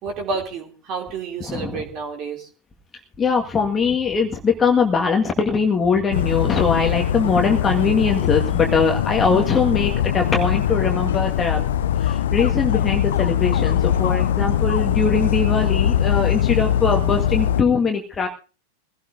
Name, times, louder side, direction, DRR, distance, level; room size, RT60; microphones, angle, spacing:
voice 1, 0.0-2.5, right 4 dB, 35° right, 2 dB, 3.0 m, -30 dB
voice 2, 1.4-1.8 3.2-11.6 12.0-18.3, left 5 dB, 20° left, 2 dB, 1.9 m, -21 dB
Dog, 6.1-17.6, left 10 dB, 60° left, 0.7 m, -21 dB
22.5 x 16.5 x 2.7 m, 0.35 s
figure-of-eight pair, 90°, 0 cm